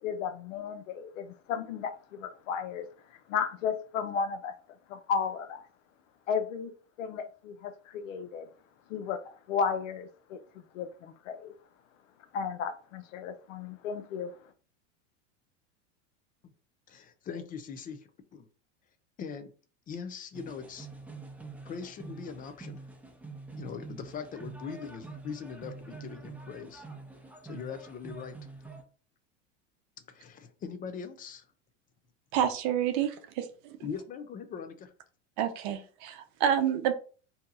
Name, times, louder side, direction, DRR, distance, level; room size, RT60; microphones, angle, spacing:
voice 1, 0.0-2.9 3.3-4.5 4.9-5.6 6.3-6.7 7.0-8.5 8.9-10.4 10.7-11.5 12.3-14.3, left 6 dB, 85° left, 0.6 m, -34 dB
voice 2, 16.9-18.5 19.2-19.5 19.9-20.9 21.7-22.8 23.6-26.8 27.4-28.4 30.1-31.5 33.8-34.9, left 6 dB, 25° left, 0.4 m, -41 dB
sound 1, 20.3-28.8, right 3 dB, 5° right, 0.7 m, -46 dB
voice 3, 32.3-33.8 35.4-36.9, right 9 dB, 55° right, 0.7 m, -29 dB
2.8 x 2.2 x 3.9 m
supercardioid pair, 115°, 37 cm